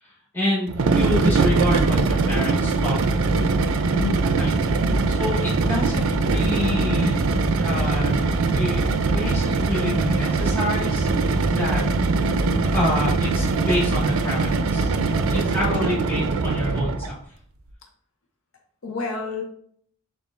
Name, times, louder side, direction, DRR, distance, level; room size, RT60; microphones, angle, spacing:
voice 1, 0.0-3.2 4.3-4.5 5.2-7.2 7.6-8.2 8.5-8.8 9.1-11.9 12.7-14.9 15.3-17.1, left 1 dB, 10° left, -8 dB, 1.6 m, -28 dB
sound 1, 0.7-17.1, right 3 dB, 90° right, 0.4 m, -22 dB
voice 2, 3.9-4.5 15.6-15.9 18.8-19.4, left 3 dB, 70° left, 2 dB, 0.6 m, -29 dB
6.7 x 2.4 x 2.5 m, 0.62 s
head